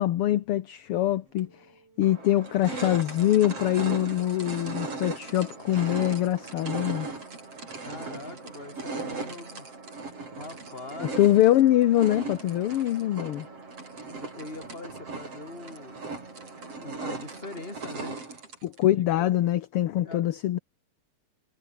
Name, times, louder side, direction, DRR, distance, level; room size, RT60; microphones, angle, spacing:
voice 1, 0.0-1.7 2.0-7.1 11.0-13.5 18.6-20.6, left 13 dB, 65° left, 1.6 m, -24 dB
sound 1, 1.4-1.5 2.0-18.8, right 3 dB, 55° right, 6.9 m, -38 dB
voice 2, 7.9-9.7 10.4-11.2 14.1-16.1 16.8-18.2 19.0-19.3 20.0-20.3, left 2 dB, 20° left, 4.3 m, -42 dB
omnidirectional pair, 3.3 m